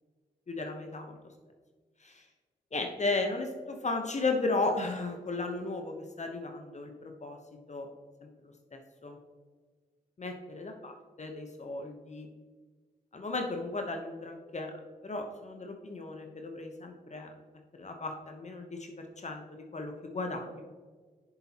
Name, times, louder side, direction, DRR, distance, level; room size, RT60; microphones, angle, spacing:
voice 1, 0.5-1.2 2.0-2.2 2.7-7.4 7.7-7.9 8.4-9.2 10.2-10.9 11.2-12.3 13.1-14.7 15.0-17.3 17.7-20.6, left 3 dB, 45° left, 4 dB, 1.0 m, -35 dB
8.0 x 6.8 x 3.0 m, 1.5 s
supercardioid pair, 40°, 17 cm